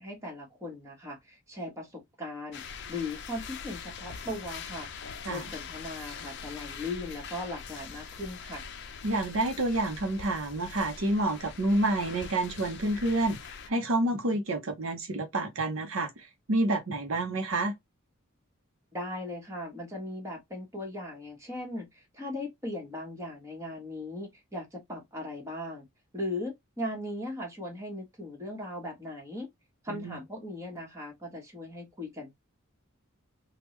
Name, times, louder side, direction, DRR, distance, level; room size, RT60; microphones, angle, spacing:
voice 1, 0.0-4.9 5.3-8.6 18.9-25.8 26.1-29.5 29.8-32.3, left 1 dB, 15° right, 1.3 m, -38 dB
sound 1, 2.5-13.7, left 6 dB, 55° left, 0.5 m, -43 dB
voice 2, 9.0-13.4 13.7-17.7 29.9-30.2, right 2 dB, 70° right, 0.8 m, -29 dB
3.5 x 2.3 x 3.1 m
head